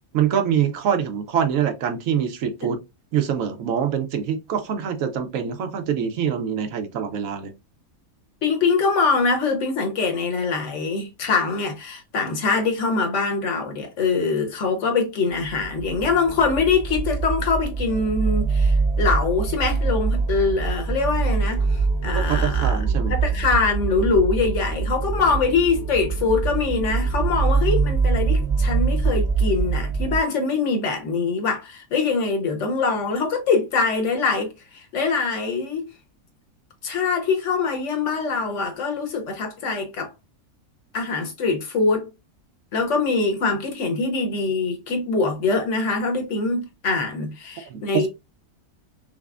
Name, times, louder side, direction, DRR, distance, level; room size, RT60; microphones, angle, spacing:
voice 1, 0.1-2.8 3.1-7.5 22.2-23.2 47.7-48.1, right 8 dB, 70° right, 1.0 m, -24 dB
voice 2, 8.4-22.8 23.1-35.9 36.8-40.1 40.9-42.1 42.7-48.1, left 4 dB, 55° left, 1.2 m, -23 dB
sound 1, 15.4-30.2, right 4 dB, 50° right, 1.2 m, -24 dB
5.8 x 2.0 x 2.3 m
omnidirectional pair, 1.5 m